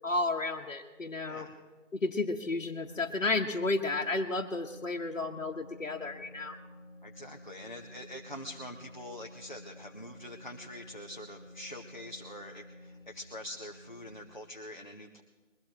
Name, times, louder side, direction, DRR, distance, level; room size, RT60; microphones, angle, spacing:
voice 1, 0.0-1.5 1.9-6.6, left 2 dB, 85° left, 0 dB, 1.3 m, -32 dB
voice 2, 1.2-1.6 7.0-15.2, left 1 dB, 40° left, 1 dB, 0.8 m, -45 dB
sound 1, 2.6-14.3, left 1 dB, 10° right, 4.1 m, -52 dB
22.0 x 15.5 x 2.9 m, 1.3 s
figure-of-eight pair, 180°, 38 cm